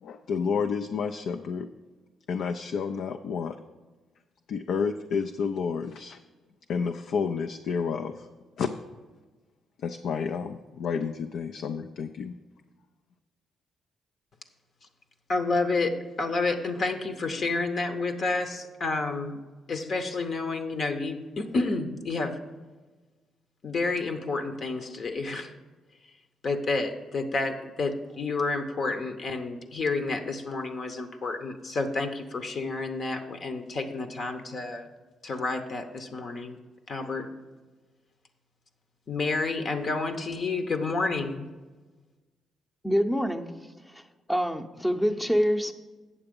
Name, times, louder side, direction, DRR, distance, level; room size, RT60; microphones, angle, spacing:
voice 1, 0.0-1.7 2.3-3.6 4.5-6.2 6.7-8.3 8.6-8.7 9.8-12.4, left 6 dB, 70° left, 6 dB, 0.4 m, -30 dB
voice 2, 15.3-19.4 19.7-22.4 23.6-25.5 26.4-34.9 35.2-36.6 36.9-37.3 39.1-41.5, left 3 dB, 50° left, 6 dB, 0.9 m, -30 dB
voice 3, 42.8-43.5 43.9-44.0 44.3-45.7, equal, 5° left, 6 dB, 0.7 m, -25 dB
8.6 x 6.9 x 5.2 m, 1.3 s
cardioid pair, 90°, 0 cm